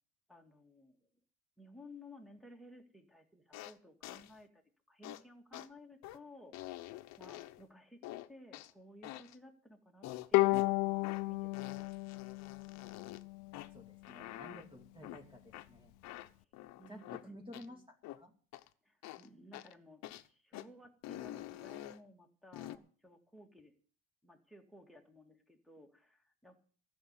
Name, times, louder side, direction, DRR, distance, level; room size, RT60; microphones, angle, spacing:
voice 1, 0.3-1.0 1.6-8.0 8.3-11.9 16.4-16.5 16.8-17.4 18.8-23.7 24.2-26.7, left 1 dB, ahead, 6 dB, 2.1 m, -57 dB
sound 1, 3.5-3.7 4.0-4.3 5.0-5.2 5.5-5.7 6.0-6.2 6.5-7.6 8.0-8.7 9.0-9.4 10.0-10.7 11.0-11.3 11.5-13.2 13.5-13.7 14.0-14.6 15.0-15.2 15.5-15.7 16.0-17.2 17.5-17.7 18.0-18.2 18.5-18.7 19.0-19.3 19.5-19.7 20.0-20.3 20.5-20.7 21.0-22.0 22.5-22.8, left 15 dB, 60° left, 1.0 m, -47 dB
Bowed string instrument, 10.3-13.7, left 21 dB, 85° left, 0.6 m, -33 dB
voice 2, 13.7-15.9 16.9-18.3, equal, 15° right, 4 dB, 2.4 m, -53 dB
14.0 x 6.8 x 9.7 m, 0.43 s
cardioid pair, 140°, 30 cm